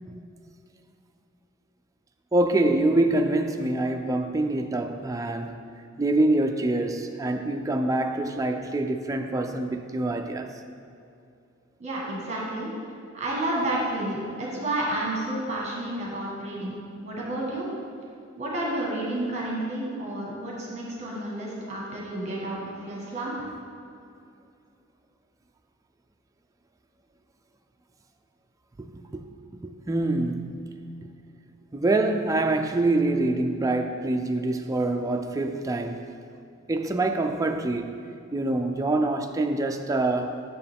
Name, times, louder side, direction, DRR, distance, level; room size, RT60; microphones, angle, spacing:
voice 1, 2.3-5.6 6.0-10.5 28.8-29.2 29.6-31.1 31.7-36.1 36.7-38.0 38.3-40.4, right 2 dB, 15° right, 5 dB, 0.3 m, -25 dB
voice 2, 11.8-12.7 13.1-16.7 17.0-17.7 18.4-23.3, right 1 dB, 35° right, -4 dB, 1.4 m, -30 dB
6.9 x 6.3 x 3.5 m, 2.6 s
head